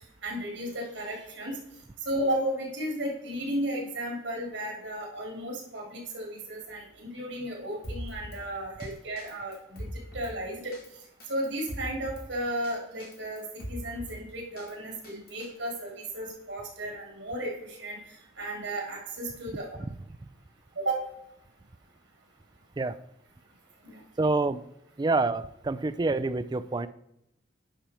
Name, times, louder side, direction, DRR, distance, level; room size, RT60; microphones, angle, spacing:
voice 1, 0.2-1.6 2.0-10.7 11.3-13.4 13.7-18.0 18.4-19.7 20.8-21.0 23.8-24.0, right 1 dB, 90° right, 0 dB, 3.1 m, -34 dB
Drum kit, 7.8-8.4 8.8-8.9 9.2-10.3 10.7-10.9 11.2-12.2 12.6-12.7 13.0-14.2 14.6-15.5, equal, 55° left, 2.3 m, -40 dB
voice 2, 24.2-24.6 25.0-26.9, right 3 dB, 25° right, 13 dB, 0.4 m, -27 dB
10.0 x 5.7 x 4.4 m, 0.82 s
head